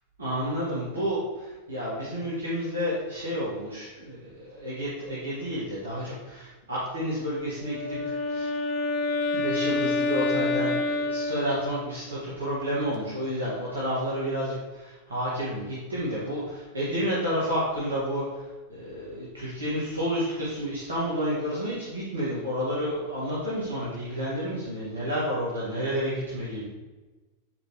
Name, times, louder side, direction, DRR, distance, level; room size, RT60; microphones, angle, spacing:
voice 1, 0.2-8.5 9.3-26.7, equal, 70° right, -8 dB, 2.1 m, -30 dB
Wind instrument woodwind instrument, 7.5-12.1, left 3 dB, 30° left, 1.3 m, -28 dB
9.5 x 4.8 x 3.4 m, 1.2 s
figure-of-eight pair, 90°, 0 cm